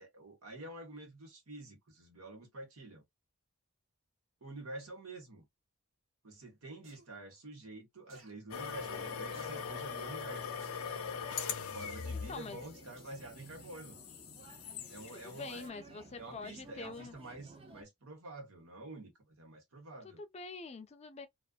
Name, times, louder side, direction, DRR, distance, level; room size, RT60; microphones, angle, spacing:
voice 1, 0.0-3.0 4.4-5.5 6.2-10.5 11.7-14.0 14.9-15.7 16.2-20.2, right 2 dB, 90° right, 1.2 m, -48 dB
sound 1, 6.8-7.1 8.1-8.3 9.3-9.6 10.6-10.8 11.8-12.0 13.0-13.2 13.7-13.8, right 3 dB, 65° right, 0.9 m, -59 dB
sound 2, 8.5-15.7, left 6 dB, 90° left, 0.5 m, -42 dB
sound 3, 8.5-17.8, right 3 dB, 25° right, 0.5 m, -55 dB
voice 2, 12.3-12.6 15.1-17.1 20.2-21.3, left 4 dB, 30° left, 0.4 m, -45 dB
2.5 x 2.2 x 2.3 m
head